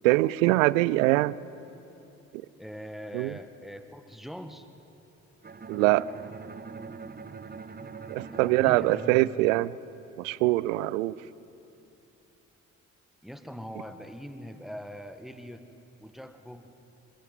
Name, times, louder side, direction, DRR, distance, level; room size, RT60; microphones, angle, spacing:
voice 1, 0.0-1.3 3.1-3.3 5.7-6.0 8.1-9.7 10.2-11.2, right 19 dB, 70° right, 21 dB, 0.6 m, -23 dB
voice 2, 2.6-4.7 8.3-9.2 13.2-15.7 16.0-16.7, equal, ahead, 9 dB, 1.6 m, -42 dB
Bowed string instrument, 5.4-10.4, right 5 dB, 25° right, 1.2 m, -43 dB
26.5 x 16.5 x 7.9 m, 2.9 s
figure-of-eight pair, 40°, 40 cm